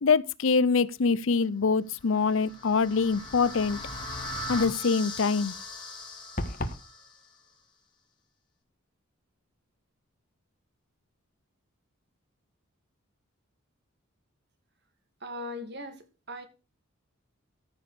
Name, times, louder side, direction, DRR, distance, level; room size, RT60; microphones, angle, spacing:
voice 1, 0.0-3.8 4.5-5.5, left 5 dB, 70° left, 0.6 m, -24 dB
sound 1, 2.0-7.1, left 1 dB, 20° left, 3.9 m, -39 dB
sound 2, 6.4-6.9, left 1 dB, 40° left, 1.6 m, -31 dB
voice 2, 15.2-16.5, left 1 dB, 50° right, 2.4 m, -39 dB
14.5 x 5.2 x 6.7 m
head